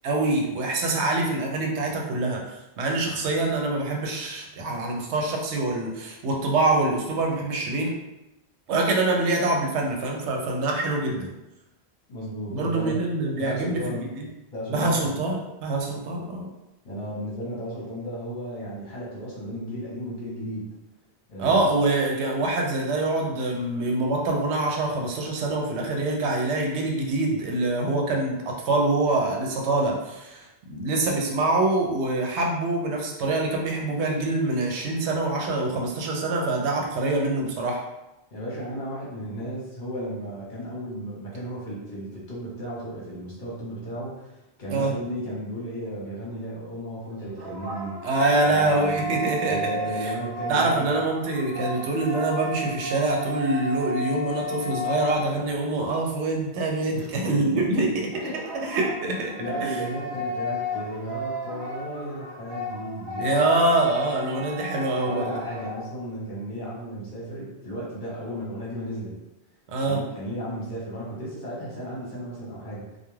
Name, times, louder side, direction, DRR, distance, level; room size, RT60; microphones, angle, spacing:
voice 1, 0.0-7.9 8.7-11.3 12.5-13.8 14.1-14.3 14.7-16.5 21.4-37.8 44.7-44.9 48.0-50.1 50.5-58.1 58.3-59.3 59.6-59.8 63.2-65.3 69.7-70.0, right 2 dB, 80° right, 0 dB, 0.9 m, -25 dB
voice 2, 12.1-13.0 13.4-14.2 14.5-15.1 16.8-20.6 21.3-21.6 38.3-47.9 48.5-49.1 49.4-50.9 56.9-58.3 59.4-63.8 65.0-69.2 69.9-72.9, equal, 50° left, -6 dB, 0.9 m, -34 dB
sound 1, 47.1-55.8 58.1-65.9, left 1 dB, 45° right, 0.3 m, -33 dB
2.3 x 2.2 x 3.0 m, 0.95 s
omnidirectional pair, 1.1 m